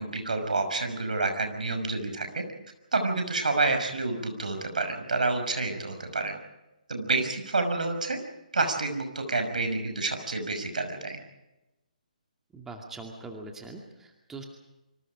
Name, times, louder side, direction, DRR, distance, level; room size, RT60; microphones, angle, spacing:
voice 1, 0.0-2.4 2.9-6.3 6.9-8.2 8.5-11.2, right 3 dB, 65° right, 6 dB, 5.9 m, -28 dB
voice 2, 12.5-14.4, right 3 dB, 10° right, 2 dB, 2.3 m, -42 dB
27.0 x 25.5 x 5.0 m, 0.96 s
figure-of-eight pair, 135°, 5 cm